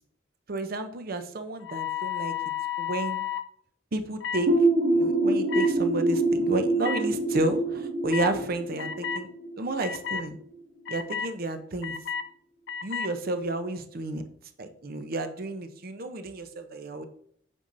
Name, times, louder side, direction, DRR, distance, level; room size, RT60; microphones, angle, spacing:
voice 1, 0.5-2.3 2.8-3.2 3.9-4.5 4.9-9.3 9.6-10.4 10.9-11.9 12.8-14.2 14.6-17.1, right 2 dB, 50° right, 8 dB, 0.6 m, -31 dB
sound 1, 1.6-3.4 4.2-4.4 5.5-5.7 6.8-7.0 8.1-8.3 8.8-9.2 9.8-10.2 10.9-11.3 11.8-12.2 12.7-13.1, left 8 dB, 65° left, 0.4 m, -32 dB
sound 2, 4.5-10.0, right 2 dB, 75° right, 1.8 m, -25 dB
8.2 x 5.3 x 2.6 m, 0.64 s
head